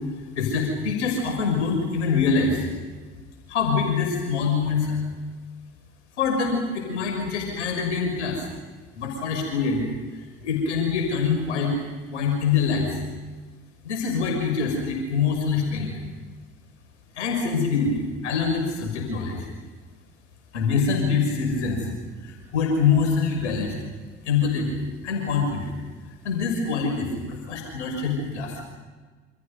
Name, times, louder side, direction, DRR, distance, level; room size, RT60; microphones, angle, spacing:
voice 1, 0.3-2.7 3.5-5.0 6.2-8.5 9.0-9.9 10.4-11.8 12.1-13.0 13.8-15.9 17.1-19.5 20.5-21.9 22.2-23.7 24.2-24.8 25.0-25.7 26.2-28.6, left 5 dB, 75° left, 2 dB, 6.4 m, -24 dB
29.0 x 27.0 x 5.5 m, 1.4 s
figure-of-eight pair, 60°, 36 cm